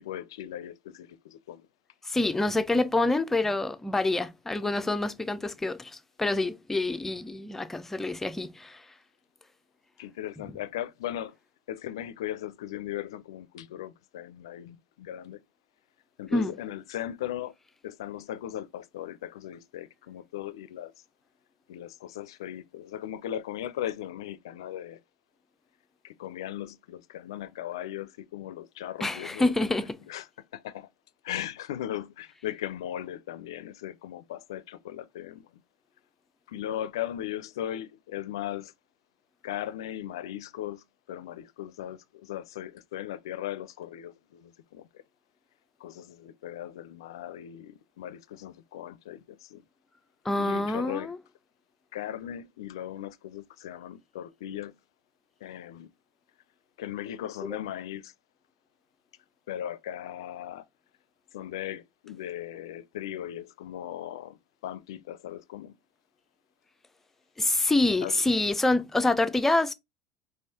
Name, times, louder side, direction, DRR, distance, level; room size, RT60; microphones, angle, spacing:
voice 1, 0.0-1.6 10.0-11.3 11.7-15.4 16.2-17.5 17.8-20.9 21.7-25.0 26.0-29.8 30.1-30.3 30.5-30.9 31.2-35.6 36.5-38.7 39.4-44.9 45.8-49.6 50.4-51.1 51.9-54.7 55.4-55.9 56.8-58.1 59.5-60.6 61.3-65.7 68.0-68.2, left 12 dB, 85° left, 0.4 m, -38 dB
voice 2, 2.0-8.8 16.3-16.5 29.0-30.0 50.2-51.2 57.4-57.6 67.4-69.7, left 2 dB, 10° left, 0.5 m, -27 dB
4.6 x 3.2 x 2.8 m
hypercardioid pair, 85°, 2 cm